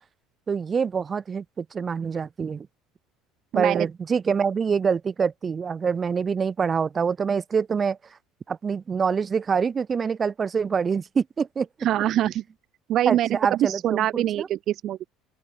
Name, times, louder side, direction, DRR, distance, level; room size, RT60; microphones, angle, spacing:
voice 1, 0.5-2.7 3.5-8.0 8.5-11.7 13.0-14.5, right 6 dB, 30° right, 5.1 m, -25 dB
voice 2, 3.5-3.9 11.8-12.4 12.9-15.1, right 12 dB, 50° right, 2.2 m, -24 dB
open air
supercardioid pair, 115°, 0 cm